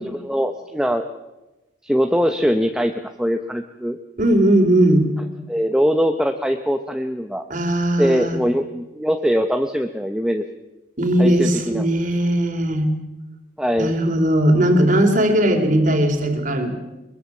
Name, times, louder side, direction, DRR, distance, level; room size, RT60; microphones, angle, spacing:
voice 1, 0.1-1.0 1.8-2.9 3.2-4.0 5.5-7.5 8.0-10.4 11.2-11.8 13.6-13.9, equal, 5° right, 6 dB, 0.8 m, -21 dB
voice 2, 4.2-5.1 7.5-8.4 11.0-12.9 13.8-16.7, right 1 dB, 40° right, 5 dB, 3.1 m, -18 dB
22.5 x 22.0 x 7.2 m, 1.0 s
head